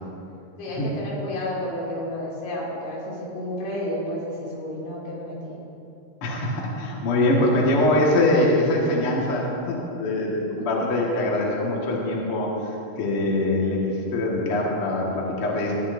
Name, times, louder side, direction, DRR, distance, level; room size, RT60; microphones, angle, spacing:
voice 1, 0.6-5.6, left 1 dB, 75° left, -6 dB, 4.5 m, -31 dB
voice 2, 6.2-15.8, left 1 dB, 50° left, -3 dB, 1.8 m, -23 dB
18.5 x 11.5 x 2.6 m, 2.7 s
omnidirectional pair, 4.6 m